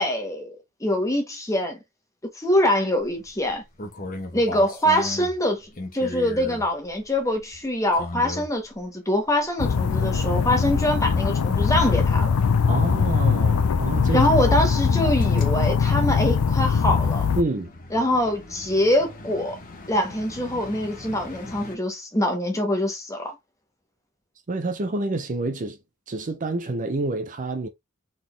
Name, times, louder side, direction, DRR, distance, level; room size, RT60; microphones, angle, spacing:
voice 1, 0.0-1.8 2.3-3.6 4.3-12.4 14.1-17.2 17.9-19.6 19.9-23.3, left 1 dB, 15° left, 1.3 m, -24 dB
sound 1, 3.0-8.8 9.3-9.8 10.2-21.8, left 2 dB, 40° left, 1.1 m, -40 dB
sound 2, 9.6-17.4, left 5 dB, 90° left, 0.5 m, -21 dB
voice 2, 12.7-14.4 17.4-17.7 24.5-25.8 26.1-27.7, right 2 dB, 35° right, 0.6 m, -28 dB
4.0 x 3.9 x 3.3 m
head